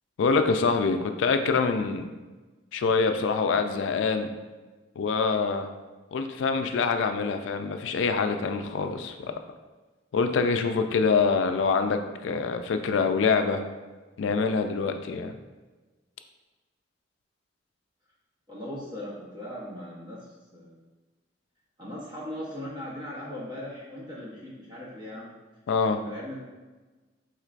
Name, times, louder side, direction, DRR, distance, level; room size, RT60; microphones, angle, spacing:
voice 1, 0.2-2.1 2.7-4.3 5.0-5.7 6.1-9.3 10.1-13.6 14.2-15.3 25.7-26.0, left 4 dB, 80° left, 7 dB, 0.3 m, -25 dB
voice 2, 18.5-20.3 20.5-20.8 21.8-25.3 26.0-26.4, left 1 dB, 25° right, -7 dB, 0.7 m, -39 dB
4.5 x 3.1 x 2.4 m, 1.3 s
head